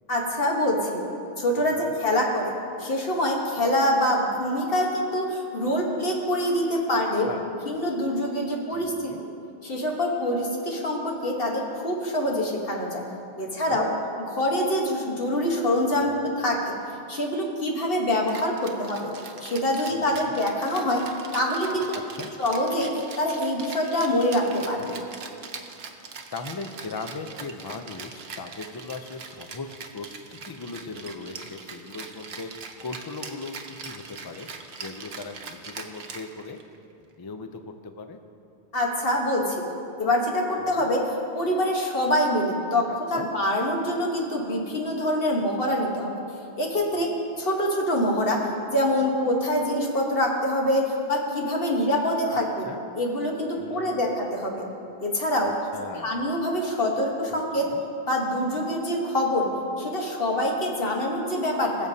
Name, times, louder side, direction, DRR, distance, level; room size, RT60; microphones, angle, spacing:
voice 1, 0.1-1.0 1.4-2.5 2.8-9.1 9.6-13.0 13.4-13.9 14.3-16.7 17.1-19.1 19.4-21.0 21.3-22.0 22.4-25.0 38.7-39.6 40.0-42.8 43.1-46.1 46.6-48.4 48.7-52.7 52.9-54.6 55.0-55.5 56.0-57.7 58.1-59.5 59.8-61.9, left 1 dB, 55° left, 0 dB, 1.4 m, -25 dB
voice 2, 1.6-2.0 6.9-7.0 7.2-7.5 8.7-9.3 13.6-13.9 15.9-16.2 19.9-20.4 21.9-22.3 24.8-25.0 26.0-34.5 34.8-36.6 37.2-38.2 40.7-40.9 43.1-43.3 46.9-47.2 52.3-52.4 52.6-52.8 53.6-54.0 55.4-56.1 57.5-57.8, left 3 dB, 35° left, 7 dB, 0.3 m, -39 dB
Rattle (instrument), 18.3-36.8, right 5 dB, 65° right, 1.0 m, -41 dB
21.5 x 7.2 x 2.7 m, 2.7 s
omnidirectional pair, 1.2 m